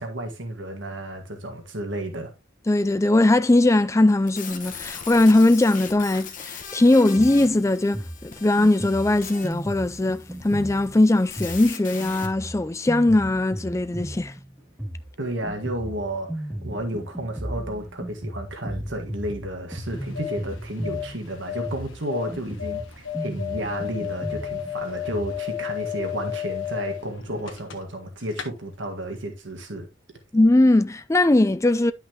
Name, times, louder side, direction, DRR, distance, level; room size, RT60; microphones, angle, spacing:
voice 1, 0.0-2.3 15.2-29.9, right 1 dB, 70° right, 1.8 m, -32 dB
voice 2, 2.7-14.3 30.3-31.9, left 2 dB, 15° left, 0.4 m, -20 dB
sound 1, 4.3-12.3, left 7 dB, 45° left, 1.3 m, -40 dB
Drum kit, 7.2-25.4, right 1 dB, 5° right, 2.8 m, -36 dB
sound 2, 19.8-28.0 28.3-28.5, left 11 dB, 85° left, 1.4 m, -33 dB
10.5 x 5.8 x 2.9 m
head